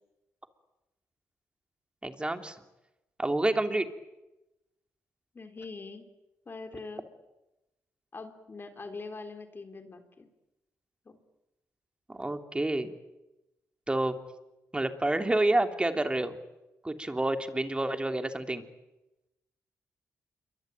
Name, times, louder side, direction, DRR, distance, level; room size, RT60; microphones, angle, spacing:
voice 1, 2.0-2.6 3.2-3.9 12.1-12.9 13.9-14.2 14.7-16.4 16.8-18.6, right 2 dB, 15° right, 6 dB, 3.1 m, -28 dB
voice 2, 5.3-6.1 6.5-7.1 8.1-10.3 11.1-11.2, left 3 dB, 40° left, 7 dB, 3.8 m, -43 dB
27.5 x 23.5 x 9.1 m, 0.96 s
cardioid pair, 70°, 6 cm